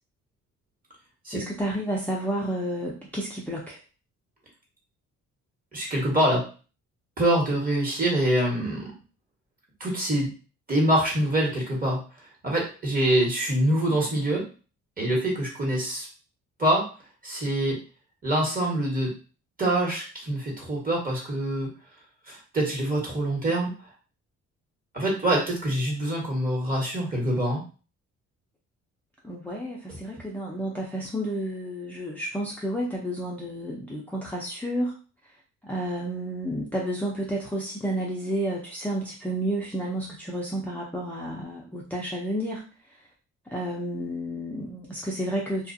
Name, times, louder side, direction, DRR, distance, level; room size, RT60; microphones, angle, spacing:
voice 1, 1.3-3.8 29.2-34.9 35.6-42.7 43.5-45.7, right 1 dB, 5° left, -4 dB, 0.4 m, -31 dB
voice 2, 5.7-6.4 7.2-8.9 9.8-10.3 10.7-12.0 12.4-14.4 15.0-16.1 16.6-16.9 17.2-17.8 18.2-19.1 19.6-21.7 22.3-23.7 24.9-27.6, right 1 dB, 30° right, -3 dB, 1.2 m, -25 dB
2.4 x 2.1 x 2.6 m, 0.36 s
cardioid pair, 90°, 30 cm